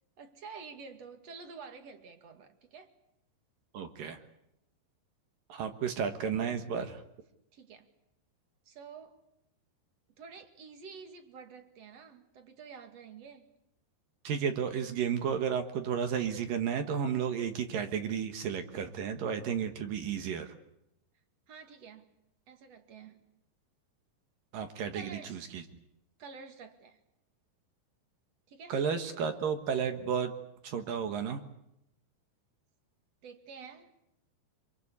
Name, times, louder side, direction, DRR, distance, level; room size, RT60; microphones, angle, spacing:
voice 1, 0.2-2.9 7.5-7.9 8.7-9.2 10.2-13.5 21.5-22.1 22.5-23.2 24.9-25.5 26.2-27.0 28.5-28.7 33.2-33.9, right 5 dB, 45° right, 7 dB, 2.6 m, -49 dB
voice 2, 3.7-4.2 5.5-7.0 14.2-20.5 24.5-25.6 28.7-30.3 30.6-31.4, right 7 dB, 60° right, 7 dB, 2.7 m, -32 dB
27.0 x 23.0 x 8.4 m, 0.82 s
omnidirectional pair, 5.0 m